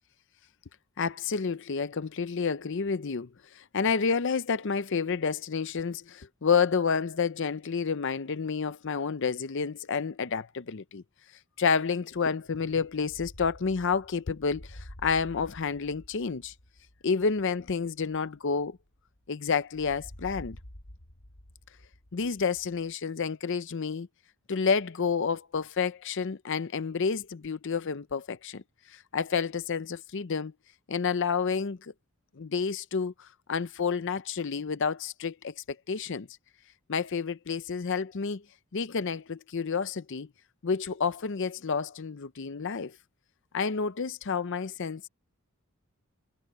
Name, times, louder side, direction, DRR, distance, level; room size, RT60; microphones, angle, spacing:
voice 1, 1.0-11.0 11.6-16.5 17.0-18.8 19.3-20.6 22.1-24.1 24.5-28.6 28.9-30.5 30.9-31.9 32.4-35.5 35.9-36.3 36.9-38.4 38.7-40.3 40.6-43.0 43.5-45.1, left 5 dB, 55° left, 0.6 m, -29 dB
sound 1, 12.9-19.3 19.7-22.9, left 1 dB, 90° left, 4.0 m, -49 dB
head